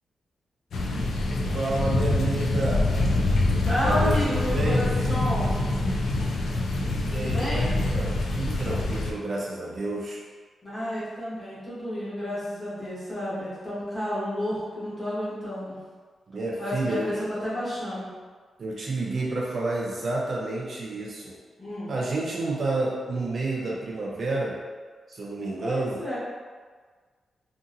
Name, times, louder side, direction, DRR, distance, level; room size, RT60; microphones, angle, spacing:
sound 1, 0.7-9.1, left 2 dB, 70° left, 0.3 m, -25 dB
voice 1, 1.5-2.9 3.8-4.9 7.0-10.2 16.3-17.1 18.6-21.4 21.9-24.6 25.1-26.0, right 2 dB, 45° right, -4 dB, 0.4 m, -30 dB
voice 2, 3.6-5.6 7.1-7.7 10.6-15.8 16.6-18.1 21.6-21.9 25.6-26.2, equal, 20° left, -10 dB, 1.1 m, -31 dB
2.7 x 2.6 x 2.5 m, 1.5 s
wide cardioid pair, 150°, 0 cm